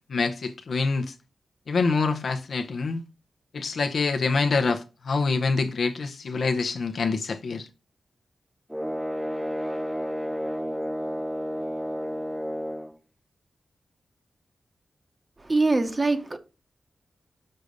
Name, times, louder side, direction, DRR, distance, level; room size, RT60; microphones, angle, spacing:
voice 1, 0.1-1.1 1.7-3.0 3.5-7.7, left 4 dB, 65° left, 0.7 m, -26 dB
sound 1, 8.7-13.0, equal, 5° right, 0.5 m, -31 dB
voice 2, 15.5-16.4, right 3 dB, 25° right, 1.0 m, -23 dB
6.7 x 6.5 x 5.1 m
wide cardioid pair, 165°, 0 cm